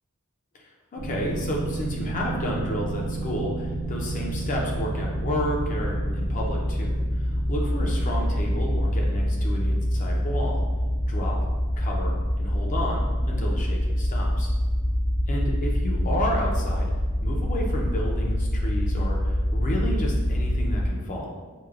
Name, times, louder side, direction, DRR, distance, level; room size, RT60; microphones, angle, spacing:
voice 1, 0.5-10.6 11.1-11.4 11.8-14.5 15.3-16.9 17.2-21.3, equal, 35° left, -1 dB, 0.4 m, -31 dB
sound 1, 1.0-20.9, equal, 70° left, 1.0 m, -26 dB
4.6 x 2.0 x 2.3 m, 1.4 s
head